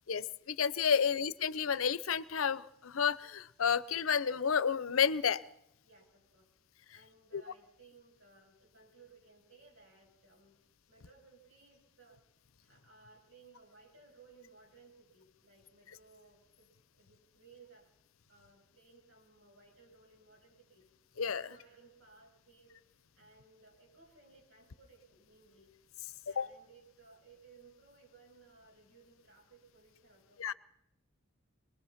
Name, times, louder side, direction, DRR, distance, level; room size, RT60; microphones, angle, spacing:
voice 1, 0.1-5.4 7.3-7.4 21.2-21.4 26.4-26.5 30.4-30.5, left 7 dB, 90° left, 18 dB, 0.7 m, -31 dB
voice 2, 5.8-6.5 6.9-12.2 12.6-17.9 18.3-20.9 21.4-25.8 26.3-30.5, right 4 dB, 70° right, -1 dB, 7.8 m, -61 dB
23.5 x 20.0 x 5.8 m, 0.80 s
head